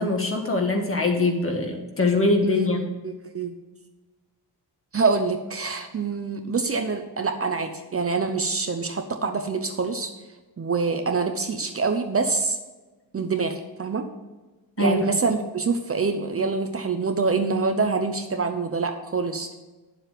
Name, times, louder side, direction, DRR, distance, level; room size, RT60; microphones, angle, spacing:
voice 1, 0.0-2.8 14.8-15.1, left 2 dB, 30° left, 2 dB, 1.7 m, -23 dB
voice 2, 2.4-3.5 4.9-10.1 10.6-12.6 13.1-14.1 14.8-19.5, right 4 dB, 35° right, 6 dB, 0.8 m, -26 dB
11.0 x 7.4 x 5.1 m, 1.2 s
wide cardioid pair, 170°, 41 cm